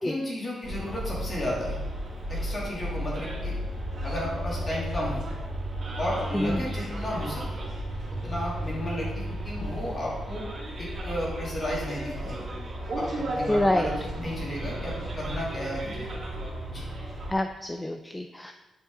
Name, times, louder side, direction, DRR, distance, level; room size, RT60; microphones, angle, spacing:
voice 1, 0.0-1.8 2.3-3.5 4.0-5.2 6.0-7.4 8.2-10.4 10.8-12.5 12.9-16.1 16.7-16.8, equal, 30° left, -5 dB, 2.7 m, -33 dB
Bus, 0.6-17.3, equal, 50° right, 2.4 m, -34 dB
voice 2, 6.3-6.6 13.5-13.9 17.3-18.5, left 1 dB, 10° left, 5 dB, 0.4 m, -26 dB
8.5 x 5.2 x 3.8 m, 1.1 s
cardioid pair, 115°, 0 cm